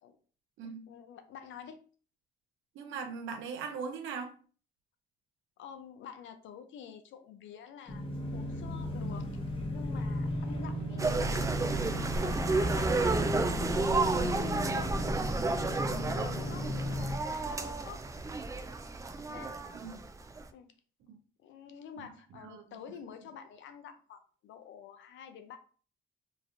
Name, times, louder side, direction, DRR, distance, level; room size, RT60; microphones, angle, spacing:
voice 1, 0.9-1.8 5.6-9.4 9.7-11.4 11.7-13.2 13.6-18.0 19.3-19.6 20.5-20.7 21.4-25.6, left 7 dB, 75° left, 0.5 m, -48 dB
voice 2, 2.7-4.3 14.2-14.4 19.7-20.0 21.1-21.2 22.0-22.1 22.4-22.6, right 5 dB, 80° right, 0.6 m, -40 dB
sound 1, 7.9-17.2, left 1 dB, 30° left, 1.1 m, -35 dB
sound 2, 11.0-20.4, right 3 dB, 15° right, 0.3 m, -31 dB
3.0 x 2.5 x 2.5 m
cardioid pair, 90°, 20 cm